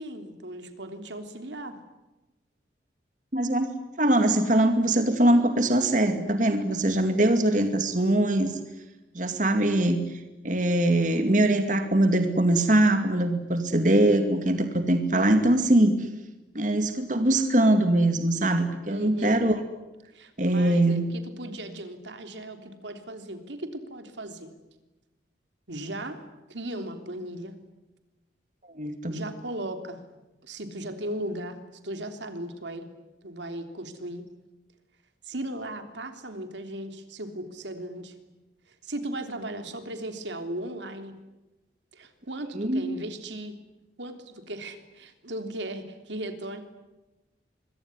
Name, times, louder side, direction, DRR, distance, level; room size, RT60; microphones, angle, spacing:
voice 1, 0.0-1.8 18.9-19.4 20.1-24.5 25.7-26.2 26.5-27.5 29.1-30.0 30.4-31.6 31.8-32.9 33.2-34.2 35.2-38.1 38.8-41.1 41.9-43.6 44.0-46.6, right 1 dB, 85° right, 7 dB, 3.4 m, -37 dB
voice 2, 3.3-3.7 4.0-8.6 9.1-16.1 16.5-19.6 20.4-21.1 28.7-29.2 42.5-42.8, right 1 dB, 45° right, 7 dB, 2.3 m, -22 dB
25.5 x 23.0 x 9.8 m, 1.1 s
head